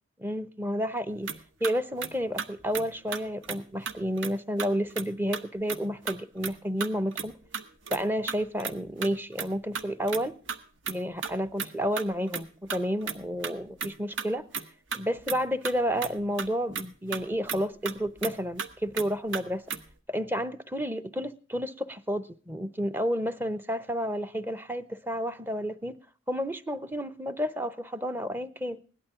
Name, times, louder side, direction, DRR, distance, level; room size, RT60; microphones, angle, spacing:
voice 1, 0.2-1.3 1.6-7.3 7.9-10.4 10.9-14.5 14.9-19.6 20.1-26.0 26.3-28.8, equal, 10° right, 0.7 m, -31 dB
sound 1, 1.2-1.4 1.6-1.7 2.0-2.1 2.4-2.5 2.7-2.8 3.1-3.6 3.9-4.3 4.6-5.1 5.3-5.4 5.7-5.8 6.1-6.5 6.8-8.8 9.0-9.5 9.7-10.6 10.8-11.0 11.2-12.4 12.7-13.9 14.2-14.3 14.5-14.6 14.9-15.4 15.6-16.1 16.4-16.5 16.7-16.8 17.1-17.2 17.5-18.3 18.6-18.7 19.0-19.1 19.3-19.4 19.7-19.9, right 6 dB, 60° right, 1.1 m, -34 dB
17.5 x 12.0 x 3.7 m
head